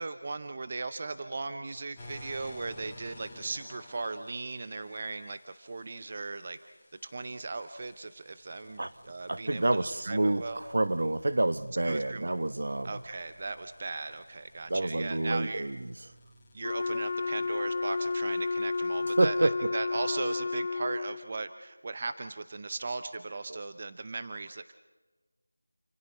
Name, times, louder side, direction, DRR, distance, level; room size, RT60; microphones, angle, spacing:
voice 1, 0.0-6.6 7.0-10.6 11.8-12.4 12.8-15.7 16.5-24.7, right 3 dB, 25° right, 10 dB, 0.6 m, -38 dB
sound 1, 2.0-19.5, left 1 dB, 5° left, 2.5 m, -55 dB
voice 2, 9.3-13.0 14.7-15.9 19.2-19.7 23.5-23.6, right 2 dB, 50° right, 12 dB, 1.0 m, -28 dB
Wind instrument woodwind instrument, 16.6-21.3, left 3 dB, 25° left, 0.8 m, -31 dB
28.5 x 27.5 x 4.3 m, 1.3 s
figure-of-eight pair, 175°, 0 cm